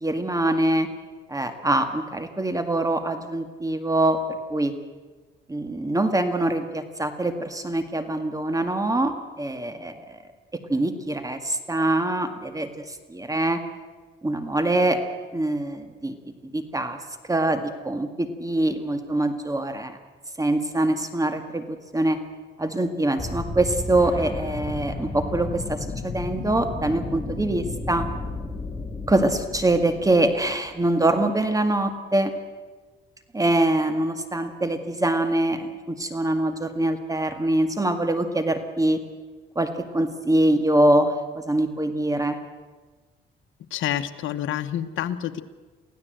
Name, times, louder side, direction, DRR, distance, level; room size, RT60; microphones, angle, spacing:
voice 1, 0.0-0.9 1.3-4.2 4.5-4.7 5.5-10.2 10.5-13.6 14.2-15.0 15.3-16.2 16.5-17.0 17.3-20.0 20.4-22.2 22.6-28.1 29.1-32.3 33.3-39.0 39.6-42.4, right 1 dB, 15° right, 8 dB, 1.9 m, -24 dB
sound 1, 23.2-30.9, left 3 dB, 25° left, 2.5 m, -33 dB
voice 2, 43.7-45.4, left 11 dB, 80° left, 8 dB, 1.1 m, -28 dB
24.0 x 16.0 x 7.9 m, 1.3 s
cardioid pair, 90°, 20 cm